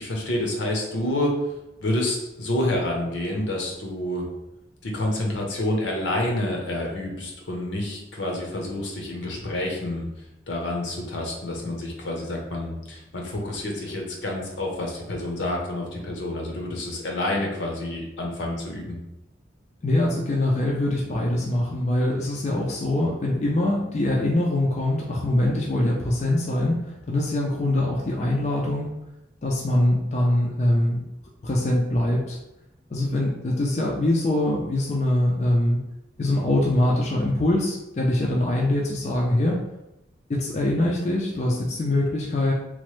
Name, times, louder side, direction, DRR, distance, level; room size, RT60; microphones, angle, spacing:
voice 1, 0.0-1.3 1.8-4.3 4.8-10.0 10.5-19.0, left 1 dB, 75° left, 0 dB, 0.7 m, -28 dB
voice 2, 19.8-29.0 29.4-31.0 31.4-32.4 32.9-35.8 36.2-39.6 40.3-42.5, left 1 dB, 35° left, -2 dB, 0.3 m, -23 dB
3.0 x 2.0 x 3.1 m, 0.92 s
head